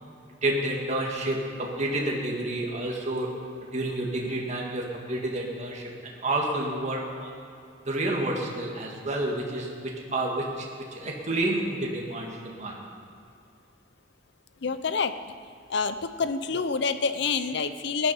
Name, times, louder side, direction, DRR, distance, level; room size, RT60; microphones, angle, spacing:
voice 1, 0.3-7.3 7.9-12.8, right 1 dB, 40° right, -1 dB, 1.9 m, -30 dB
voice 2, 14.6-15.2 15.7-18.1, left 5 dB, 65° left, 12 dB, 0.7 m, -27 dB
17.0 x 11.0 x 5.6 m, 2.6 s
head